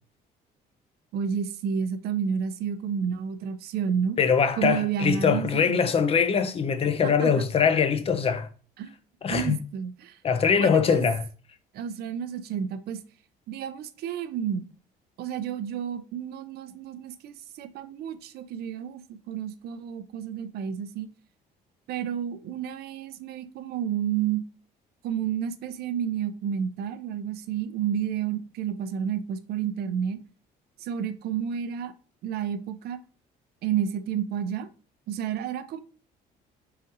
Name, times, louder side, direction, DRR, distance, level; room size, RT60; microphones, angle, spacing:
voice 1, 1.1-4.2 4.6-5.8 7.0-7.3 8.8-8.9 9.3-10.2 10.6-11.1 11.7-13.0 13.5-14.7 15.2-21.1 21.9-24.4 25.0-30.2 30.8-31.9 32.2-33.0 33.6-34.7 35.1-35.8, right 8 dB, 70° right, 0.5 m, -30 dB
voice 2, 4.2-8.5 9.2-9.6 10.2-11.3, left 6 dB, 35° left, 0.5 m, -22 dB
4.2 x 3.8 x 2.7 m
cardioid pair, 110°, 17 cm